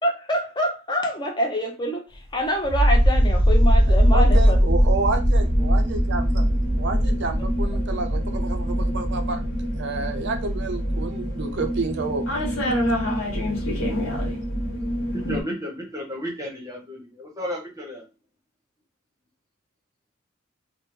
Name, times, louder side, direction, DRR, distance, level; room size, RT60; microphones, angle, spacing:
voice 1, 0.0-4.7, equal, 20° left, 3 dB, 0.6 m, -26 dB
sound 1, 2.6-15.4, equal, 65° left, 1.2 m, -21 dB
voice 2, 3.9-6.5 6.7-9.4 9.8-12.2, right 3 dB, 55° right, 6 dB, 0.4 m, -29 dB
voice 3, 15.1-18.1, equal, 15° right, 0 dB, 0.8 m, -33 dB
3.2 x 2.1 x 3.0 m, 0.28 s
head